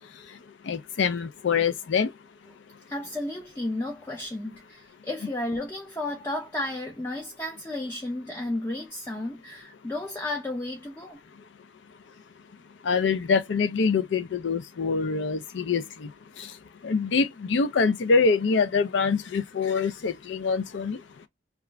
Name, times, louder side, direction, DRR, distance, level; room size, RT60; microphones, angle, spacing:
voice 1, 0.7-2.1 12.8-16.1 16.4-16.5 16.8-21.0, left 5 dB, 75° left, 0.4 m, -25 dB
voice 2, 2.9-11.2, left 1 dB, 10° left, 0.4 m, -33 dB
2.4 x 2.3 x 3.0 m
head